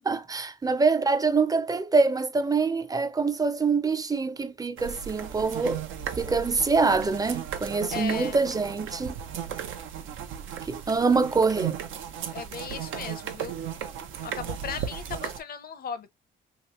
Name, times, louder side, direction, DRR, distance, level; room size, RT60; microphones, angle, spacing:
voice 1, 0.1-5.8 6.1-9.2 10.7-11.8, right 4 dB, 20° right, 0.5 m, -25 dB
sound 1, 4.8-15.4, right 9 dB, 85° right, 0.6 m, -35 dB
voice 2, 7.9-8.4 12.3-13.6 14.2-16.2, left 6 dB, 50° left, 0.7 m, -37 dB
3.0 x 2.8 x 3.0 m
cardioid pair, 90°, 20 cm